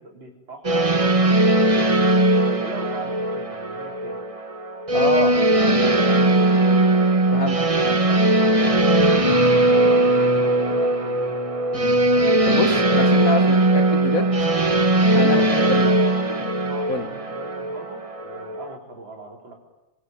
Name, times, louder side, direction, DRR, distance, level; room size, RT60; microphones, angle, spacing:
voice 1, 0.0-1.9 2.3-4.2 5.0-6.8 7.5-11.3 15.3-19.5, right 2 dB, 85° right, 1 dB, 5.0 m, -38 dB
sound 1, 0.6-18.7, right 2 dB, 20° right, 1.0 m, -19 dB
voice 2, 4.9-5.3 7.3-8.0 11.7-12.0 12.5-14.4 15.1-15.9 16.9-17.1, left 3 dB, 45° left, 7 dB, 2.3 m, -26 dB
28.5 x 23.0 x 9.2 m, 1.1 s
omnidirectional pair, 2.0 m